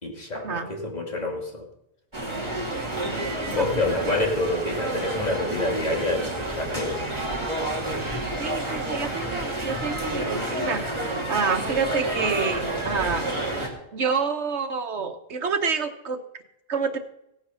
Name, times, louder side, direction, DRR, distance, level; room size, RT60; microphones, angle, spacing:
voice 1, 0.0-1.7 3.5-7.0, left 2 dB, 40° left, 1 dB, 2.6 m, -27 dB
sound 1, 2.1-13.7, right 1 dB, 25° right, 2.8 m, -29 dB
voice 2, 8.4-10.8 11.3-13.2 13.9-16.2 16.7-17.0, right 5 dB, 80° right, 6 dB, 1.6 m, -28 dB
16.5 x 8.9 x 5.8 m, 0.82 s
omnidirectional pair, 1.1 m